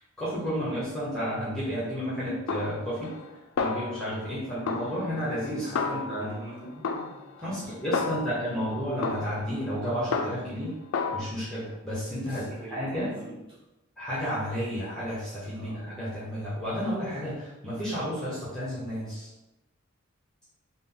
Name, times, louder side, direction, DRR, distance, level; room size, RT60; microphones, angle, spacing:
voice 1, 0.2-3.1 3.6-6.3 7.4-10.7 11.1-12.4 12.7-13.1 14.0-19.3, equal, 5° left, -10 dB, 0.9 m, -32 dB
Snare drum, 2.5-3.3 3.6-4.3 4.7-6.4 6.8-8.5 9.0-10.6 10.9-11.2, left 4 dB, 85° left, 0.4 m, -32 dB
voice 2, 4.5-7.0 7.4-8.3 11.6-11.8 12.2-13.6 15.5-16.0, equal, 25° right, -8 dB, 1.4 m, -44 dB
3.8 x 2.1 x 3.8 m, 0.99 s
head